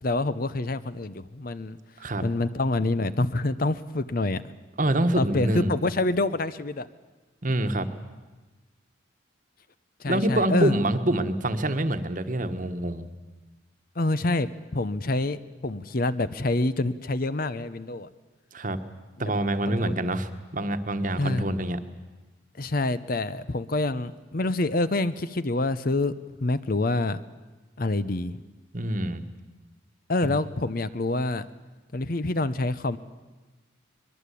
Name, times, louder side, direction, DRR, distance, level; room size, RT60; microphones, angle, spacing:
voice 1, 0.0-1.8 2.2-4.4 5.2-6.9 10.0-10.7 14.0-18.1 19.7-20.0 21.2-21.6 22.6-26.1 26.4-27.2 27.8-28.4 30.1-31.5 31.9-33.0, left 2 dB, 45° left, 14 dB, 0.8 m, -27 dB
voice 2, 4.8-5.7 7.4-7.9 10.1-13.1 18.5-18.8 19.2-21.8 28.7-29.2, right 1 dB, 40° right, 9 dB, 1.4 m, -26 dB
23.0 x 21.5 x 8.4 m, 1.2 s
head